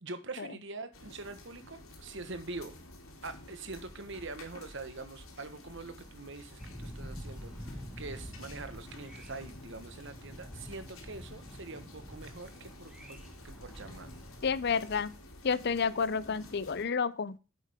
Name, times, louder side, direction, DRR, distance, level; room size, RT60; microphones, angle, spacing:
voice 1, 0.0-2.8 3.2-14.1, right 3 dB, 60° right, 1.4 m, -44 dB
sound 1, 0.9-16.8, left 1 dB, 85° left, 3.1 m, -51 dB
Thunder, 6.6-15.0, equal, 5° right, 1.7 m, -48 dB
voice 2, 14.4-15.1 15.4-17.4, left 5 dB, 50° left, 0.6 m, -30 dB
10.0 x 8.3 x 3.6 m
head